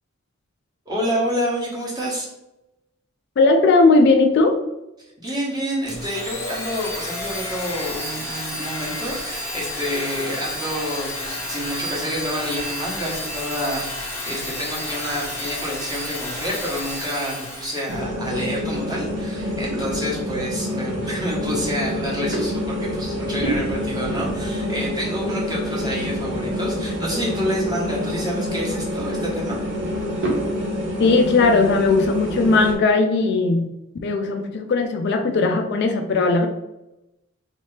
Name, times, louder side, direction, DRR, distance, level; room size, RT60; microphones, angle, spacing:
voice 1, 0.9-2.3 5.0-29.6, equal, 20° right, -5 dB, 1.0 m, -28 dB
voice 2, 3.4-4.6 31.0-33.7 34.0-36.5, left 3 dB, 50° left, 5 dB, 0.3 m, -18 dB
Domestic sounds home sounds, 5.9-18.0, left 1 dB, 10° left, 0.6 m, -31 dB
sound 1, 17.9-32.7, equal, 60° right, 0.8 m, -27 dB
3.2 x 2.8 x 3.2 m, 0.94 s
head